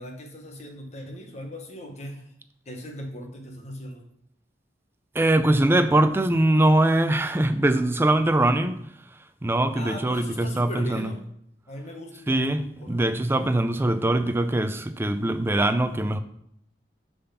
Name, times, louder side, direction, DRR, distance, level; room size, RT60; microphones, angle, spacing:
voice 1, 0.0-2.3 2.6-4.0 9.8-11.2 11.7-13.5, equal, 40° left, 1.2 m, -38 dB
voice 2, 5.1-8.8 9.4-11.1 12.3-16.2, right 1 dB, 15° right, 0.4 m, -22 dB
6.8 x 4.0 x 5.6 m
head